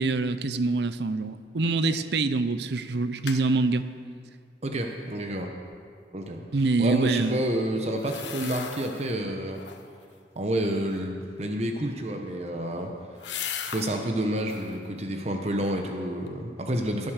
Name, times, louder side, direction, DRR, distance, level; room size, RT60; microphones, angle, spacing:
voice 1, 0.0-3.9 6.5-7.4, right 3 dB, 70° right, 13 dB, 0.6 m, -25 dB
sound 1, 1.8-2.2 2.5-2.6 2.9-3.4 7.9-9.1 9.5-10.0 12.0-14.0 14.4-14.8 15.3-15.9 16.3-16.4, left 8 dB, 85° left, 1.1 m, -39 dB
voice 2, 4.6-5.5 6.1-6.5 6.8-9.6 10.4-12.9 13.6-17.1, right 1 dB, 35° right, 3 dB, 1.0 m, -29 dB
16.0 x 9.4 x 6.6 m, 2.2 s
head